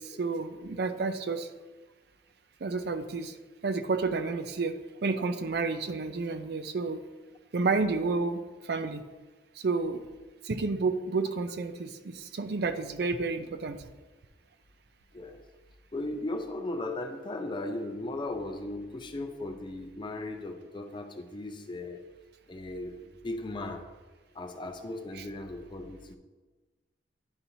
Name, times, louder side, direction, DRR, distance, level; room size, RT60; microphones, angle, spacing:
voice 1, 0.0-1.5 2.6-3.4 3.6-4.7 5.0-7.0 7.5-9.0 9.6-10.0 10.4-13.8 25.1-25.2, right 4 dB, 60° right, 9 dB, 0.5 m, -30 dB
voice 2, 15.9-22.1 22.5-23.8 24.3-26.2, left 2 dB, 25° left, 5 dB, 0.5 m, -37 dB
10.5 x 4.2 x 2.7 m, 1.3 s
head